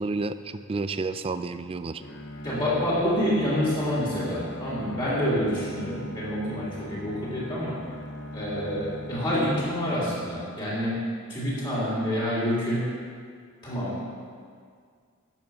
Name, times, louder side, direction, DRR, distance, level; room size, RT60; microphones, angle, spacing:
voice 1, 0.0-2.0, right 3 dB, 25° right, 11 dB, 0.3 m, -30 dB
Bowed string instrument, 2.0-10.2, equal, 50° left, 0.8 m, -40 dB
voice 2, 2.4-7.8 8.3-11.0 11.3-12.9 13.6-14.0, equal, 20° left, -8 dB, 3.1 m, -27 dB
10.5 x 7.2 x 6.3 m, 2.1 s
head